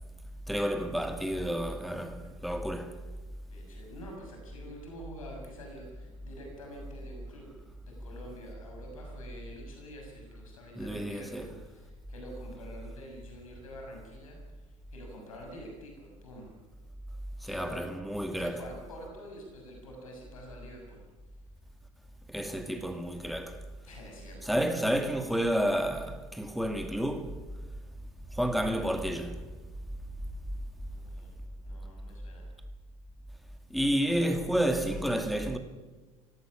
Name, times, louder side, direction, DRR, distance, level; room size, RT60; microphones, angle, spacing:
voice 1, 0.5-3.0 10.8-11.5 17.4-18.6 22.3-23.6 24.4-27.4 28.3-29.4 33.7-35.6, equal, ahead, 2.4 m, -30 dB
voice 2, 3.5-7.5 7.9-14.4 14.9-16.5 17.4-17.8 18.4-21.0 23.8-25.1 30.8-31.4 31.6-32.5, equal, 75° left, 6.6 m, -47 dB
25.5 x 17.0 x 7.3 m
figure-of-eight pair, 75°, 18 cm